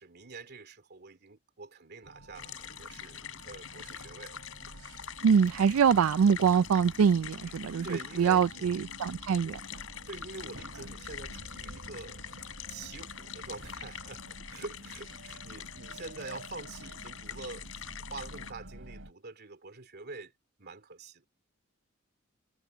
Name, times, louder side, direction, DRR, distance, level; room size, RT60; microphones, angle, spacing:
voice 1, 0.0-4.4 7.8-8.7 9.4-9.6 10.1-12.3 12.7-14.2 14.5-20.3 20.6-21.2, right 3 dB, 50° right, 2.6 m, -45 dB
sound 1, 2.0-19.1, right 1 dB, 70° right, 6.1 m, -49 dB
sound 2, 2.3-18.5, left 9 dB, 85° left, 3.3 m, -45 dB
voice 2, 5.2-7.9 8.2-9.6, right 7 dB, 90° right, 0.4 m, -24 dB
head